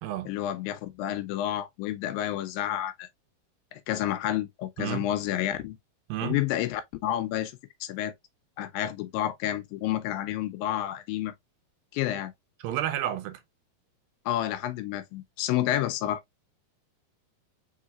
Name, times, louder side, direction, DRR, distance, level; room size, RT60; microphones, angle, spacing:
voice 1, 0.3-3.1 3.7-5.8 6.2-7.5 7.8-8.1 8.6-11.3 11.9-12.3 14.3-16.2, left 12 dB, 80° left, 2.3 m, -30 dB
voice 2, 4.8-5.1 6.1-6.4 12.6-13.4, right 12 dB, 85° right, 2.5 m, -31 dB
5.0 x 3.8 x 2.3 m
omnidirectional pair, 4.1 m